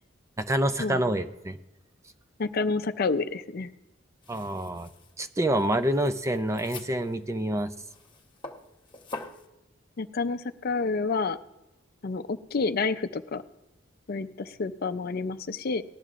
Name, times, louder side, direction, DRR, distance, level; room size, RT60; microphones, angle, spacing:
voice 1, 0.4-1.6 4.3-4.9 5.2-7.7, right 1 dB, 15° right, 10 dB, 0.4 m, -27 dB
voice 2, 2.4-3.7 10.0-11.4 12.0-13.4 14.1-15.8, left 4 dB, 50° left, 10 dB, 0.5 m, -29 dB
sound 1, 4.2-9.5, left 3 dB, 25° left, 1.0 m, -45 dB
19.0 x 12.5 x 2.5 m, 0.97 s
head